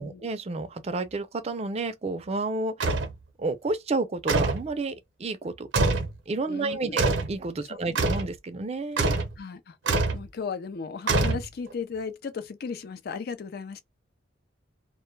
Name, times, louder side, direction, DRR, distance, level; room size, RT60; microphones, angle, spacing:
voice 1, 0.0-2.9 3.4-4.9 5.2-5.7 6.3-9.2, right 3 dB, 35° right, 0.4 m, -30 dB
sound 1, 2.8-3.1 4.3-4.7 5.7-6.1 7.0-7.3 8.0-8.3 9.0-9.3 9.9-10.2 11.1-11.7, right 3 dB, 85° right, 0.6 m, -24 dB
voice 2, 6.5-7.0 7.7-8.0 9.4-13.8, left 5 dB, 55° left, 0.4 m, -36 dB
2.1 x 2.1 x 3.0 m
head